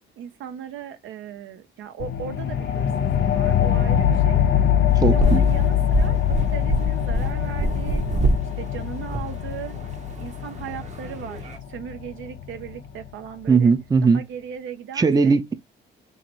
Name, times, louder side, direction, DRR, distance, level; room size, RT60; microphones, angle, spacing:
voice 1, 0.2-4.4 5.0-8.1 8.6-9.8 10.2-13.7 14.1-15.4, right 9 dB, 75° right, 0.7 m, -37 dB
sound 1, 2.0-13.1, left 10 dB, 65° left, 0.6 m, -23 dB
sound 2, 4.9-11.6, right 2 dB, 35° right, 0.9 m, -27 dB
voice 2, 5.0-5.5 13.5-14.2 15.0-15.5, right 4 dB, 20° right, 0.5 m, -18 dB
2.8 x 2.8 x 4.4 m
cardioid pair, 90°, 20 cm